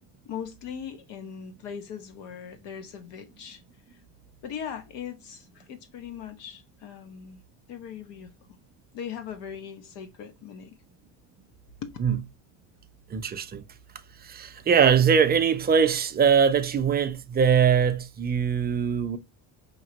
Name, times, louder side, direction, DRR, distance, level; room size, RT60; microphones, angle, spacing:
voice 1, 0.2-3.6 4.4-7.4 7.7-8.3 8.9-10.8 11.8-12.0, left 8 dB, 70° left, 1.1 m, -39 dB
voice 2, 13.1-13.6 14.2-19.2, right 7 dB, 20° right, 0.5 m, -22 dB
5.2 x 2.9 x 2.8 m
cardioid pair, 115°, 44 cm